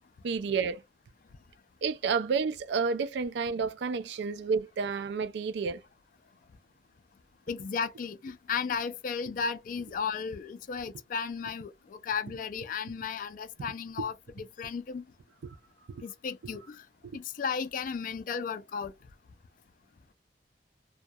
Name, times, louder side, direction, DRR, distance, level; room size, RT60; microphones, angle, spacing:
voice 1, 0.2-0.8 1.8-5.8 15.4-15.6 15.9-16.0 16.4-16.5 17.0-17.2, right 5 dB, 70° right, 0.4 m, -30 dB
voice 2, 7.5-15.0 16.0-16.9 17.1-18.9, left 6 dB, 50° left, 0.3 m, -34 dB
2.2 x 2.1 x 2.6 m
head